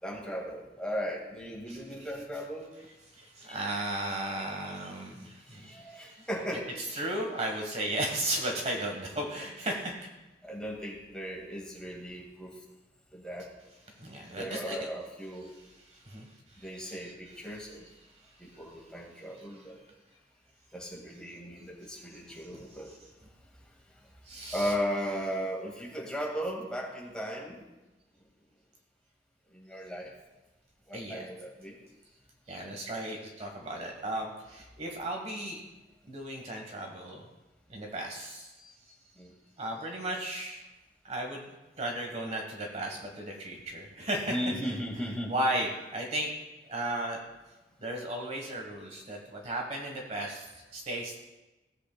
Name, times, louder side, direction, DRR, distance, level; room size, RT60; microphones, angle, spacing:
voice 1, 0.0-2.7 3.5-3.6 5.6-6.6 10.4-12.5 13.1-13.5 14.4-15.5 16.6-17.8 18.4-19.8 20.7-22.9 24.5-27.6 29.5-30.1 30.9-31.8 39.2-39.3 44.3-45.3, equal, 5° left, -2 dB, 1.8 m, -36 dB
voice 2, 1.7-2.1 3.1-6.3 6.8-9.9 13.9-14.8 15.8-17.0 17.6-17.7 18.3-18.6 19.3-19.6 22.3-22.6 24.2-24.7 30.9-31.3 32.5-35.6 36.1-37.3 37.7-38.7 39.6-40.6 41.0-41.5 41.8-44.3 44.6-44.8 45.3-46.3 46.6-47.2 47.8-51.1, right 1 dB, 35° right, 1 dB, 1.2 m, -35 dB
16.0 x 8.0 x 2.2 m, 1.1 s
head